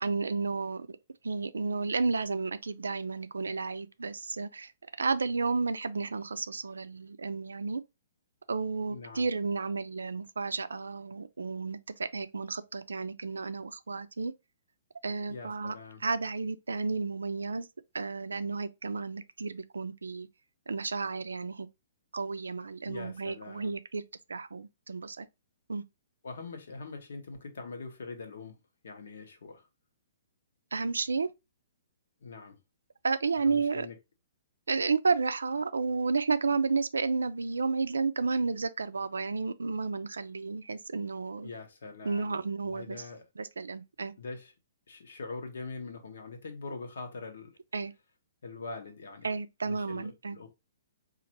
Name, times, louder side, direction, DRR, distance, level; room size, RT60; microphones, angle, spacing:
voice 1, 0.0-1.0 1.2-4.7 5.0-7.8 8.5-14.3 15.0-15.7 16.0-17.7 17.9-20.3 20.7-21.7 22.1-24.0 24.3-25.3 25.7-25.8 30.7-31.3 33.0-33.9 34.7-41.5 42.0-43.0 43.4-44.1 47.7-47.9 49.2-50.4, right 4 dB, 80° right, 0.3 m, -32 dB
voice 2, 8.9-9.3 15.2-16.0 22.8-23.7 26.2-29.7 32.2-32.6 33.4-33.9 41.4-43.2 44.2-44.5 44.9-47.5 48.4-49.3 49.6-50.5, left 3 dB, 70° left, 1.0 m, -43 dB
3.9 x 2.5 x 2.8 m
hypercardioid pair, 125°, 0 cm